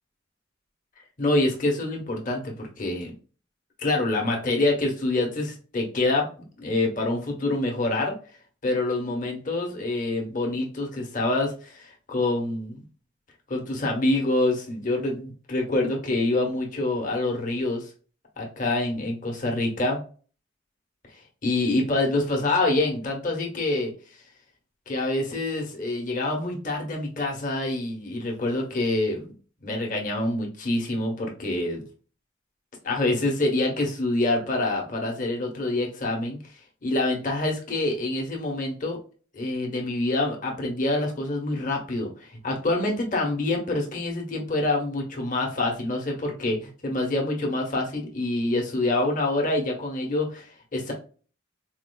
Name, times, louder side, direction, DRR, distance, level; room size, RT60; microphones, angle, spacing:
voice 1, 1.2-3.1 3.8-6.3 6.6-8.1 8.6-12.8 13.5-17.9 18.4-20.0 21.4-23.9 24.9-29.3 29.6-31.8 32.8-36.4 36.8-39.0 39.3-50.9, left 2 dB, 40° left, 0 dB, 1.0 m, -26 dB
4.2 x 2.4 x 2.2 m, 0.39 s
head